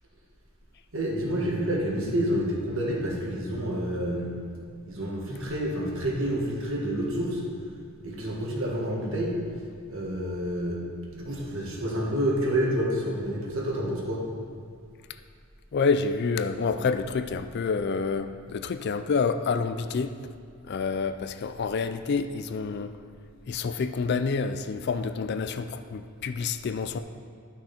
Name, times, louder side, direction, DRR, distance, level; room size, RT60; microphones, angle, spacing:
voice 1, 0.9-4.3 4.8-7.4 8.0-9.4 9.9-10.8 11.1-14.2, equal, 60° right, -3 dB, 1.7 m, -28 dB
voice 2, 15.7-20.1 20.7-22.9 23.5-27.0, left 5 dB, 50° left, 10 dB, 0.3 m, -28 dB
11.5 x 6.1 x 4.3 m, 2.3 s
head